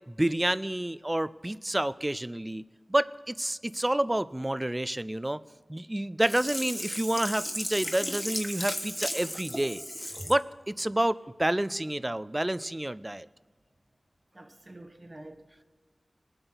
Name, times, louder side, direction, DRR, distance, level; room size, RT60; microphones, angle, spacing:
voice 1, 0.1-2.6 2.9-5.4 5.7-9.8 10.3-13.3, right 1 dB, 20° right, 0.4 m, -29 dB
Sink (filling or washing), 6.2-10.4 10.9-11.0, equal, 5° left, 1.4 m, -35 dB
voice 2, 14.3-15.6, right 1 dB, 40° right, 1.1 m, -48 dB
20.5 x 7.9 x 4.0 m
wide cardioid pair, 50°, 0 cm